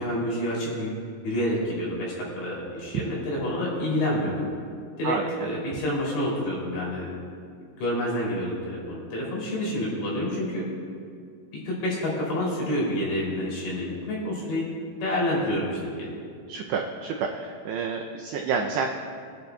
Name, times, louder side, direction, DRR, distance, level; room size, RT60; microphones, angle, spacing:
voice 1, 0.0-4.5 5.0-7.1 7.8-10.6 11.6-14.6 15.0-16.1, left 1 dB, 65° left, -5 dB, 5.1 m, -28 dB
voice 2, 5.0-5.5 16.5-18.9, right 5 dB, 85° right, 1 dB, 2.4 m, -29 dB
21.0 x 11.0 x 2.3 m, 2.2 s
omnidirectional pair, 5.5 m